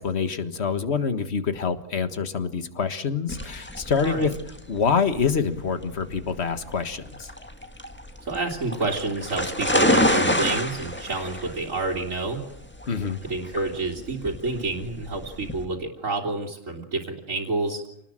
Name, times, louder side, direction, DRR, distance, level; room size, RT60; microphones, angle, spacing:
voice 1, 0.0-4.3 4.7-7.3 12.9-13.2, left 5 dB, 45° left, 10 dB, 1.8 m, -26 dB
sound 1, 3.3-15.7, left 1 dB, 5° left, 1.7 m, -28 dB
voice 2, 4.0-4.4 8.2-12.4 13.2-17.8, right 3 dB, 55° right, -3 dB, 3.4 m, -29 dB
28.0 x 19.5 x 7.6 m, 0.82 s
omnidirectional pair, 1.6 m